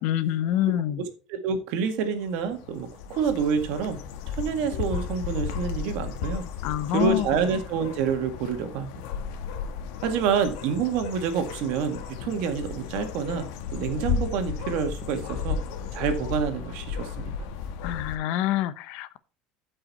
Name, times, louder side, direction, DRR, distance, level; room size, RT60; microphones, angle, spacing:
voice 1, 0.0-1.0 6.6-7.4 17.8-19.2, left 12 dB, 60° left, 0.8 m, -26 dB
voice 2, 1.0-4.0 4.3-6.4 6.9-8.9 10.0-15.6 15.9-17.3, right 6 dB, 60° right, 1.8 m, -28 dB
sound 1, 2.0-18.2, left 6 dB, 80° left, 1.4 m, -34 dB
13.0 x 5.6 x 4.2 m
cardioid pair, 180°, 2 cm